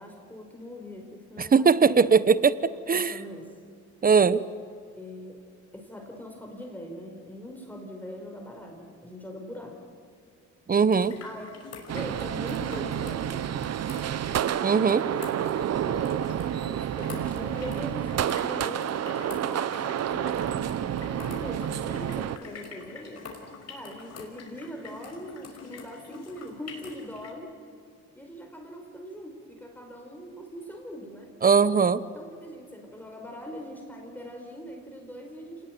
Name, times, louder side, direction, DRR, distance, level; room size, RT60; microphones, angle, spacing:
voice 1, 0.0-2.1 2.9-3.6 5.0-5.4 5.7-9.8 11.2-11.6 11.9-13.5 15.4-23.2 23.7-27.6 28.1-31.3 32.1-35.7, equal, 5° left, 2 dB, 4.8 m, -41 dB
voice 2, 1.4-3.2 4.0-4.4 10.7-11.2 14.6-15.0 31.4-32.0, right 5 dB, 30° right, 16 dB, 1.0 m, -20 dB
sound 1, 10.9-27.3, left 4 dB, 55° left, 5.4 m, -46 dB
sound 2, 11.9-22.4, right 10 dB, 55° right, 0.8 m, -29 dB
27.0 x 20.0 x 9.4 m, 2.3 s
cardioid pair, 90°, 30 cm